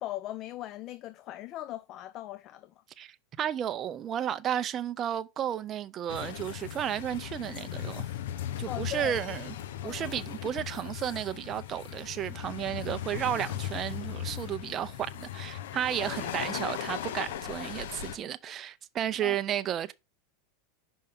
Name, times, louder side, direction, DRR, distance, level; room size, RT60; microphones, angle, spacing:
voice 1, 0.0-2.7 8.7-9.2 9.8-10.2 16.0-16.1 18.0-18.1 19.2-19.4, left 14 dB, 40° left, 0.4 m, -39 dB
voice 2, 3.0-8.1 8.6-9.5 9.8-19.9, right 10 dB, 30° right, 0.5 m, -33 dB
sound 1, 6.1-18.2, left 11 dB, 80° left, 0.7 m, -38 dB
5.5 x 5.4 x 3.6 m
supercardioid pair, 135°, 0 cm